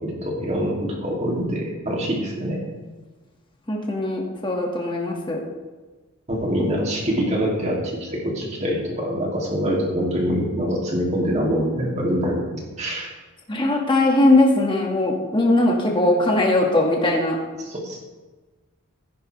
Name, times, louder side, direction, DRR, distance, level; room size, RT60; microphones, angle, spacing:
voice 1, 0.0-2.6 6.3-12.5 12.8-13.1 17.7-18.0, equal, 30° right, -2 dB, 2.6 m, -24 dB
voice 2, 3.7-5.4 13.5-17.4, left 2 dB, 20° left, 0 dB, 1.7 m, -20 dB
15.0 x 10.0 x 3.3 m, 1.3 s
head